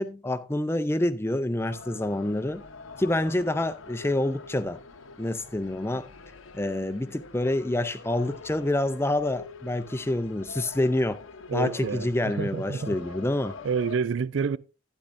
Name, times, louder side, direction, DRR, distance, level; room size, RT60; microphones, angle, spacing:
voice 1, 0.0-2.6 3.0-4.8 5.2-6.1 6.5-11.2 11.5-13.5, left 1 dB, 10° left, 0.4 m, -27 dB
sound 1, 1.6-14.0, left 4 dB, 80° left, 0.9 m, -45 dB
voice 2, 11.5-13.0 13.6-14.6, right 5 dB, 65° right, 0.4 m, -28 dB
12.0 x 10.0 x 2.6 m
head